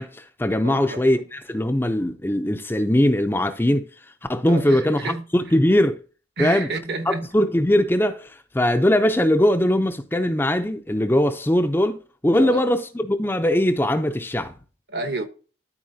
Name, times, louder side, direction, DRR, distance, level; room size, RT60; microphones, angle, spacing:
voice 1, 0.0-3.8 4.3-6.0 6.4-6.7 7.3-14.5, left 1 dB, 10° left, 0.5 m, -21 dB
voice 2, 0.6-1.1 4.4-5.2 6.4-7.3 12.3-12.6 14.9-15.2, right 2 dB, 60° right, 1.1 m, -30 dB
12.5 x 4.6 x 2.7 m
head